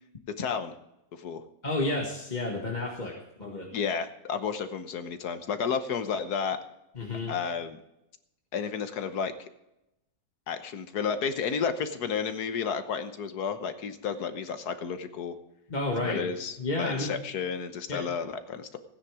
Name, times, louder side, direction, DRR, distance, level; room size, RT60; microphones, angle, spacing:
voice 1, 0.4-0.7 1.1-1.4 3.7-6.6 7.3-7.8 8.5-9.3 10.5-15.4 16.0-18.8, left 6 dB, 75° left, 9 dB, 1.6 m, -32 dB
voice 2, 1.6-3.7 6.9-7.3 15.7-16.3 16.6-17.2 17.9-18.0, left 2 dB, 30° left, -1 dB, 1.7 m, -31 dB
15.5 x 9.8 x 4.9 m, 0.87 s
omnidirectional pair, 1.7 m